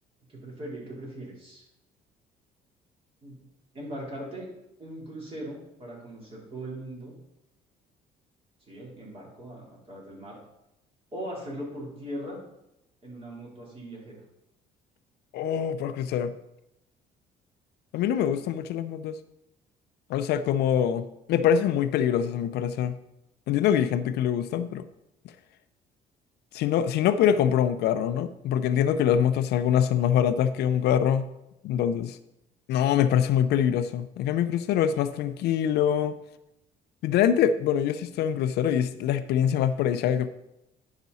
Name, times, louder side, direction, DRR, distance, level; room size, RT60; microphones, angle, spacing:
voice 1, 0.3-1.6 3.2-3.4 3.7-4.5 4.8-7.1 8.7-10.4 11.1-12.4 13.0-14.2, right 1 dB, 35° right, -4 dB, 3.8 m, -39 dB
voice 2, 15.3-16.3 17.9-19.2 20.1-23.0 23.5-24.8 26.5-31.3 31.6-32.2 32.7-36.1 37.0-40.3, left 9 dB, 75° left, 11 dB, 0.6 m, -24 dB
10.5 x 5.9 x 4.1 m, 0.88 s
cardioid pair, 110°, 17 cm